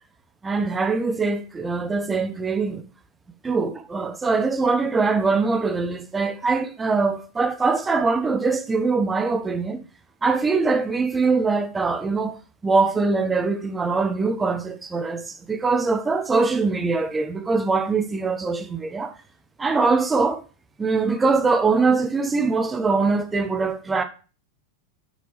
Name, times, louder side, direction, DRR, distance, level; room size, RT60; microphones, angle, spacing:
voice 1, 0.4-2.8 3.4-9.8 10.2-12.4 12.6-19.1 19.6-20.4 20.8-24.0, right 4 dB, 15° right, 0.8 m, -22 dB
8.6 x 6.1 x 3.1 m
figure-of-eight pair, 90°, 0 cm